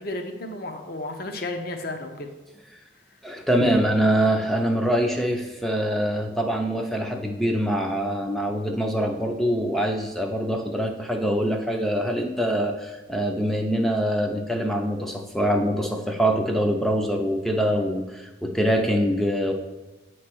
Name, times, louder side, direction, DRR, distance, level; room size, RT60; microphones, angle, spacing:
voice 1, 0.0-2.3, left 2 dB, 50° left, 5 dB, 0.7 m, -33 dB
voice 2, 3.2-19.5, equal, ahead, 2 dB, 0.5 m, -24 dB
8.8 x 3.1 x 6.0 m, 1.1 s
head